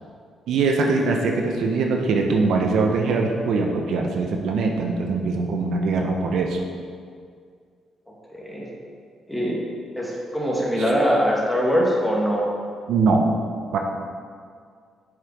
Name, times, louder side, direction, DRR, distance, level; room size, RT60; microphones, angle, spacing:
voice 1, 0.5-6.6 10.8-10.9 12.9-13.3 13.7-13.8, right 3 dB, 75° right, 2 dB, 0.8 m, -22 dB
voice 2, 8.3-8.7 9.3-9.6 10.0-12.5, equal, ahead, -4 dB, 2.0 m, -22 dB
7.5 x 6.4 x 4.7 m, 2.1 s
cardioid pair, 90°, 0 cm